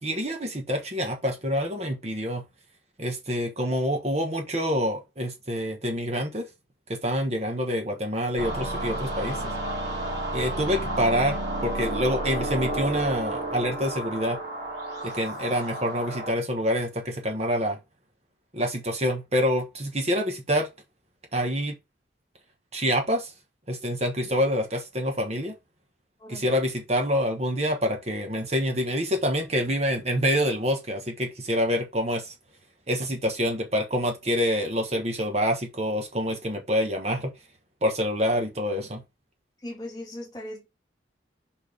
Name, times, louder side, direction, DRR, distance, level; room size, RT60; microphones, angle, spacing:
voice 1, 0.0-2.4 3.0-6.5 6.9-9.5 10.3-14.4 15.0-17.8 18.5-20.7 21.3-21.7 22.7-23.3 23.7-25.5 26.3-32.3 32.9-37.3 37.8-39.0, equal, 35° right, 1.4 m, -26 dB
sound 1, 8.4-16.3, right 1 dB, 55° right, 2.9 m, -31 dB
voice 2, 10.0-10.6 26.2-26.5 39.6-40.7, left 1 dB, 20° left, 2.4 m, -40 dB
5.5 x 4.7 x 4.7 m
head